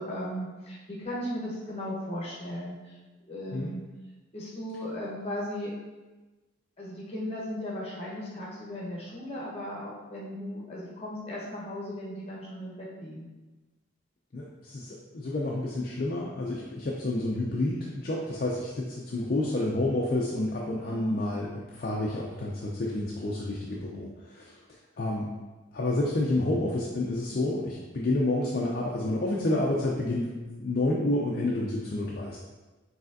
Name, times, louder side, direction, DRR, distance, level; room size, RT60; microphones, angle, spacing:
voice 1, 0.0-2.9 3.3-3.8 4.3-5.7 6.8-13.3 20.8-21.2 23.7-24.0 27.3-27.5, left 1 dB, 30° left, -5 dB, 1.0 m, -37 dB
voice 2, 14.3-24.5 25.0-25.3 25.7-30.3 30.6-32.4, left 2 dB, 50° left, -3 dB, 0.4 m, -29 dB
4.8 x 3.3 x 2.6 m, 1.2 s
head